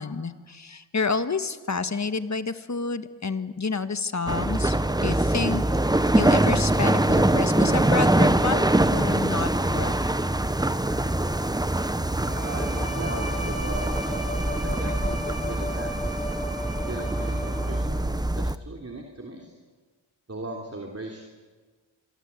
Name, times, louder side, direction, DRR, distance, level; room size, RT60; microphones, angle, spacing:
voice 1, 0.0-5.6 6.1-10.0, left 4 dB, 35° left, 10 dB, 1.4 m, -29 dB
sound 1, 4.3-18.6, right 1 dB, 10° right, 0.8 m, -24 dB
voice 2, 12.2-14.0 14.6-16.2 16.9-19.5 20.3-21.2, right 2 dB, 30° right, 2 dB, 3.1 m, -38 dB
Bowed string instrument, 12.3-18.1, left 1 dB, 15° left, 6.0 m, -36 dB
27.0 x 23.0 x 8.3 m, 1.4 s
wide cardioid pair, 100°, 49 cm